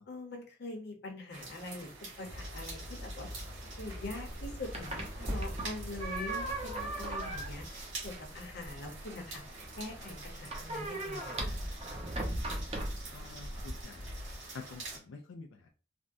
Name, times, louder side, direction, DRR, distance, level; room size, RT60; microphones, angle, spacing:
voice 1, 0.1-1.9 2.2-3.3 3.8-9.4 9.8-11.6, left 2 dB, 60° left, 2 dB, 0.8 m, -43 dB
Weak Rain on Concrete and Roof Hood (Close Perspective), 1.3-15.0, right 2 dB, 80° right, 1.6 m, -47 dB
sound 1, 2.2-7.6, left 1 dB, 65° right, 1.5 m, -44 dB
sound 2, 4.3-13.8, right 1 dB, 30° right, 0.6 m, -39 dB
voice 2, 13.1-14.2 14.5-15.7, left 4 dB, 85° left, 2 dB, 0.4 m, -48 dB
3.4 x 2.1 x 2.6 m, 0.38 s
head